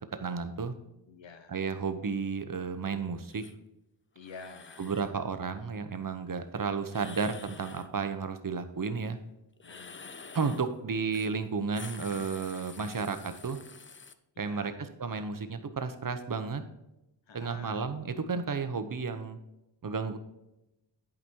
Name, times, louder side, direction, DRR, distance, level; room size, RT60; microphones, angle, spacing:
voice 1, 0.1-0.7 1.5-3.4 4.8-9.2 10.3-13.6 14.4-16.6 17.3-19.4 19.8-20.2, right 5 dB, 45° right, 9 dB, 0.9 m, -33 dB
voice 2, 1.1-1.6 4.1-5.3 9.6-10.3 14.3-14.8 17.3-18.2, left 4 dB, 80° left, 8 dB, 1.1 m, -50 dB
sound 1, 3.2-3.5 4.2-5.1 6.9-7.9 9.6-10.7 11.1-11.3 11.6-14.1, left 4 dB, 25° left, 0.5 m, -48 dB
11.0 x 5.2 x 4.5 m, 0.91 s
wide cardioid pair, 110°, 45 cm